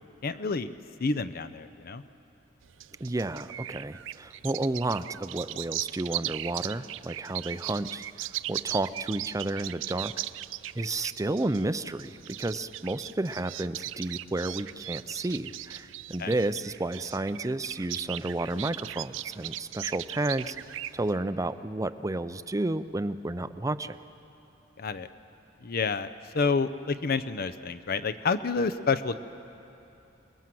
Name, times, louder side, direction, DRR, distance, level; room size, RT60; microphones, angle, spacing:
voice 1, 0.2-0.7 1.0-2.0 16.2-16.3 24.8-25.1 25.6-26.1 26.3-29.2, left 4 dB, 50° left, 12 dB, 0.6 m, -28 dB
sound 1, 2.6-21.1, right 14 dB, 75° right, 0.4 m, -38 dB
voice 2, 3.0-10.1 10.7-20.6 20.9-24.0, right 2 dB, 15° right, 12 dB, 0.5 m, -31 dB
27.5 x 20.0 x 7.7 m, 2.9 s
head